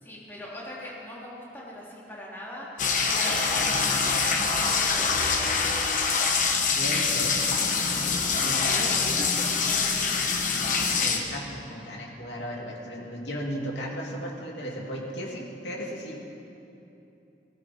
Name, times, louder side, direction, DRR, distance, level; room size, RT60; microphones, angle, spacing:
voice 1, 0.0-4.3 4.6-5.7 8.6-10.5, left 1 dB, 10° left, -6 dB, 3.1 m, -41 dB
sound 1, 2.8-11.2, left 5 dB, 45° left, 1.2 m, -25 dB
voice 2, 6.7-7.4 8.2-8.9 11.0-16.2, equal, 85° left, -2 dB, 2.6 m, -35 dB
16.0 x 15.5 x 4.4 m, 2.9 s
head